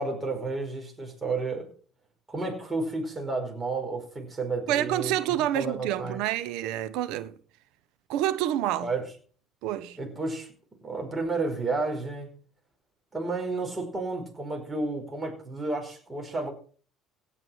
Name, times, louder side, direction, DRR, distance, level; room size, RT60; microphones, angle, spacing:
voice 1, 0.0-1.6 2.3-5.1 5.5-6.2 8.8-9.1 10.0-10.5 10.8-12.4 13.1-16.5, right 3 dB, 25° right, 5.0 m, -31 dB
voice 2, 4.7-7.3 8.1-8.9 9.6-10.0, right 12 dB, 75° right, 1.1 m, -28 dB
17.0 x 6.3 x 6.4 m
supercardioid pair, 75°, 0 cm